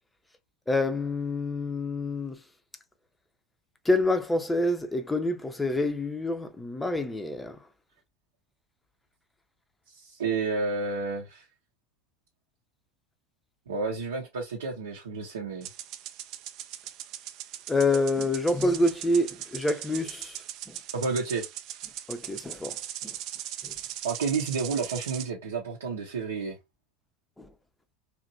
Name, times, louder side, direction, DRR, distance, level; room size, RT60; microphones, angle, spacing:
voice 1, 0.7-2.4 3.8-7.6 17.7-20.8 22.1-23.1 23.6-23.7 27.4-27.5, left 2 dB, 10° left, 0.5 m, -27 dB
voice 2, 9.9-11.4 13.7-15.7 20.9-21.4 24.0-26.6, right 4 dB, 80° right, 0.7 m, -30 dB
sound 1, 15.6-25.3, right 11 dB, 50° right, 0.3 m, -40 dB
2.8 x 2.5 x 2.6 m
hypercardioid pair, 80°, 0 cm